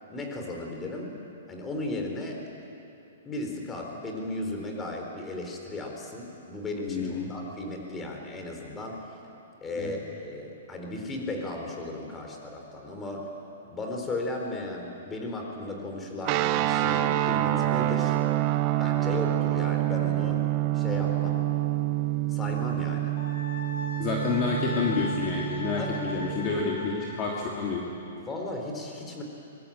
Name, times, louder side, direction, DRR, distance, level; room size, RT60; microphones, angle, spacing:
voice 1, 0.1-1.1 1.5-2.4 3.2-9.0 9.6-13.3 13.7-18.2 18.8-20.4 20.7-21.4 22.3-23.1 25.8-26.2 28.2-29.2, left 2 dB, 15° left, 2 dB, 4.0 m, -35 dB
voice 2, 6.9-7.4 9.8-9.9 24.0-27.8, left 4 dB, 30° left, -2 dB, 2.9 m, -29 dB
sound 1, 16.2-26.6, right 15 dB, 35° right, 0.8 m, -27 dB
Wind instrument woodwind instrument, 23.2-27.5, left 2 dB, 70° left, 5.8 m, -39 dB
23.5 x 22.5 x 8.8 m, 2.8 s
hypercardioid pair, 150°, 0 cm